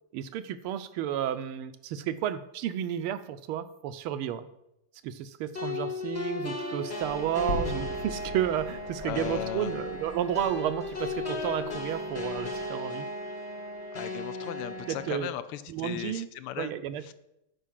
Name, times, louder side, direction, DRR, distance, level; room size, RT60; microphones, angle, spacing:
voice 1, 0.1-4.5 5.0-13.1 14.9-15.3 15.7-16.3 16.6-17.1, right 10 dB, 80° right, 12 dB, 1.5 m, -32 dB
sound 1, 5.5-15.1, left 2 dB, 25° left, 0.9 m, -36 dB
Bird vocalization bird call bird song, 7.0-12.7, right 2 dB, 20° right, 0.8 m, -51 dB
sound 2, 7.5-11.7, left 1 dB, 65° left, 1.9 m, -40 dB
voice 2, 9.0-9.7 13.9-16.7 17.1-17.2, left 12 dB, 85° left, 13 dB, 1.6 m, -37 dB
8.6 x 5.4 x 7.4 m, 0.84 s
omnidirectional pair, 2.4 m